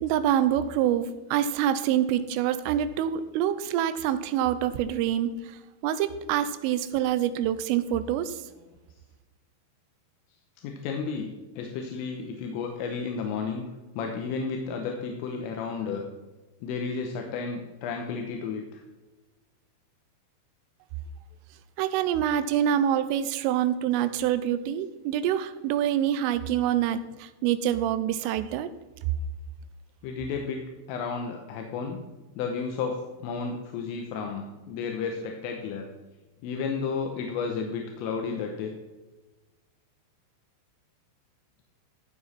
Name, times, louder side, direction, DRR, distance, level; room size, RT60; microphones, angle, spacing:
voice 1, 0.0-5.3 5.8-8.4 21.8-28.7, right 10 dB, 90° right, 12 dB, 3.3 m, -26 dB
voice 2, 10.6-13.7 14.0-16.0 16.6-18.8 30.0-30.6 30.9-32.0 32.4-35.9 36.4-38.8, left 5 dB, 85° left, 3 dB, 3.6 m, -32 dB
15.0 x 7.2 x 4.3 m, 1.1 s
omnidirectional pair, 5.7 m